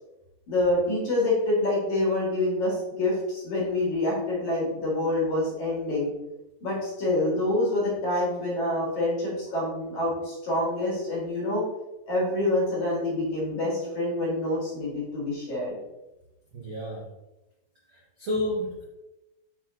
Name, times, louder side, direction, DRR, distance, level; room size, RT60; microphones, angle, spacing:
voice 1, 0.5-6.1 6.6-11.6 12.1-15.8, left 1 dB, 50° left, -5 dB, 3.1 m, -26 dB
voice 2, 16.5-17.1 17.9-18.8, left 1 dB, 65° right, -7 dB, 1.2 m, -31 dB
8.4 x 4.0 x 3.8 m, 0.97 s
omnidirectional pair, 5.0 m